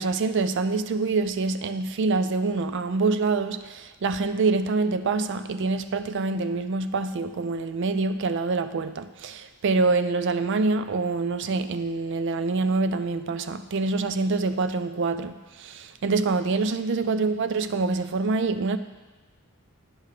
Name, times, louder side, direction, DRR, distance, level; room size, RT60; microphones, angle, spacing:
voice 1, 0.0-18.8, right 3 dB, 55° right, 11 dB, 0.4 m, -26 dB
9.7 x 5.6 x 4.9 m, 1.2 s
head